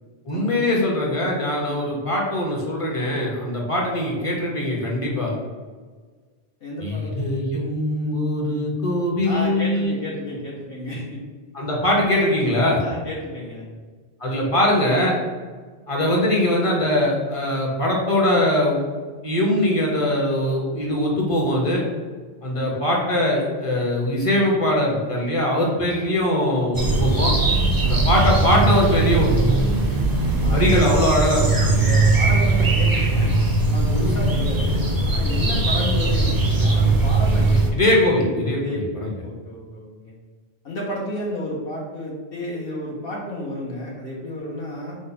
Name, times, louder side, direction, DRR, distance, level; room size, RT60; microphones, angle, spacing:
voice 1, 0.3-5.3 6.8-9.9 11.5-12.8 14.2-15.2 15.9-18.8 19.2-21.8 22.4-27.3 27.8-29.6 30.5-31.9 37.7-39.1, left 1 dB, 35° left, -2 dB, 0.8 m, -21 dB
voice 2, 6.6-7.2 9.2-11.2 12.8-13.6 27.7-28.0 30.4-30.6 31.7-33.3 33.7-37.8 38.6-40.1 40.6-45.0, left 1 dB, 65° left, -4 dB, 1.0 m, -31 dB
sound 1, 26.7-37.7, right 2 dB, 30° right, 0.4 m, -19 dB
4.9 x 2.1 x 4.0 m, 1.5 s
omnidirectional pair, 1.1 m